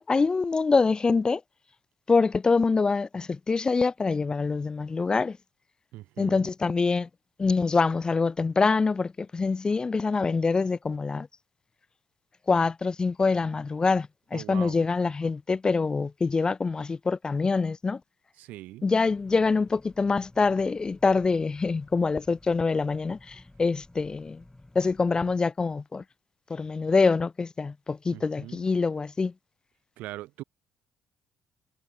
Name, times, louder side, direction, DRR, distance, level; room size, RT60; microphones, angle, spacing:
voice 1, 0.0-1.4 2.1-5.4 6.2-7.1 7.4-11.3 12.5-18.0 18.8-24.4 24.7-26.0 26.5-29.3, left 4 dB, 30° left, 0.7 m, -25 dB
voice 2, 5.9-6.5 14.3-14.8 18.4-18.9 28.1-28.6 30.0-30.4, right 17 dB, 70° right, 2.1 m, -41 dB
sound 1, 19.1-25.4, left 2 dB, 15° left, 3.9 m, -53 dB
hypercardioid pair, 45°, 3 cm